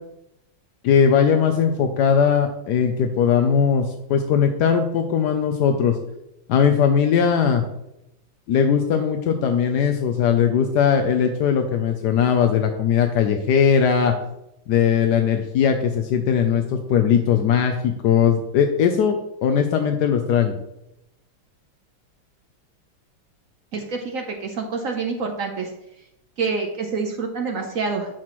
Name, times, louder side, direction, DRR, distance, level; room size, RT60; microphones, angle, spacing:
voice 1, 0.8-6.0 6.5-7.6 8.5-14.1 14.7-20.6, left 7 dB, 75° left, 5 dB, 0.9 m, -19 dB
voice 2, 23.7-25.7 26.4-28.1, right 4 dB, 65° right, 2 dB, 0.8 m, -27 dB
10.5 x 5.9 x 3.1 m, 0.84 s
omnidirectional pair, 2.4 m